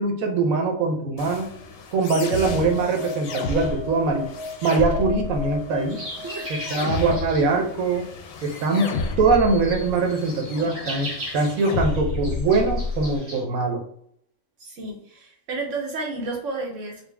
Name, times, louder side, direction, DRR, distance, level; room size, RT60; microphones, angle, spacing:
voice 1, 0.0-1.5 1.9-4.3 4.6-6.0 6.5-8.1 8.4-13.8, right 3 dB, 90° right, 3 dB, 1.2 m, -22 dB
sound 1, 1.2-13.2, left 4 dB, 85° left, 1.0 m, -32 dB
sound 2, 2.3-7.4, left 2 dB, 35° right, 1.7 m, -35 dB
sound 3, 5.9-13.4, equal, 50° right, 1.9 m, -38 dB
voice 2, 14.6-17.0, right 3 dB, 65° right, 0 dB, 1.2 m, -31 dB
4.4 x 2.0 x 3.3 m, 0.67 s
omnidirectional pair, 1.4 m